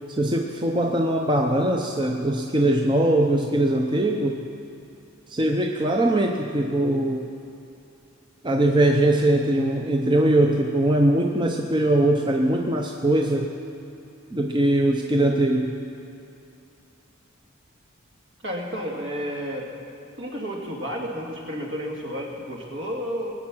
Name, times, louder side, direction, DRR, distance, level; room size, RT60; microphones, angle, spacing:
voice 1, 0.2-4.5 5.3-7.3 8.4-13.5 14.3-15.8, right 1 dB, 25° right, 2 dB, 0.6 m, -21 dB
voice 2, 18.4-19.7 20.2-23.3, equal, 60° right, -1 dB, 2.2 m, -31 dB
20.5 x 8.5 x 6.1 m, 2.6 s
head